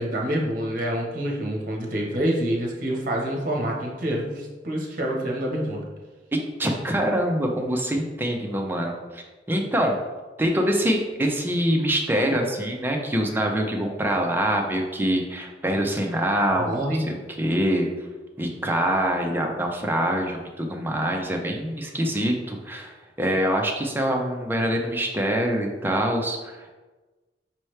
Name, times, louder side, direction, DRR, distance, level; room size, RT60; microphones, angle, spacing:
voice 1, 0.0-5.9 16.6-17.0, right 1 dB, 50° right, -1 dB, 1.0 m, -27 dB
voice 2, 6.3-10.0 10.4-17.9 18.4-26.7, right 1 dB, 10° right, 1 dB, 0.5 m, -25 dB
5.5 x 3.0 x 3.2 m, 1.2 s
head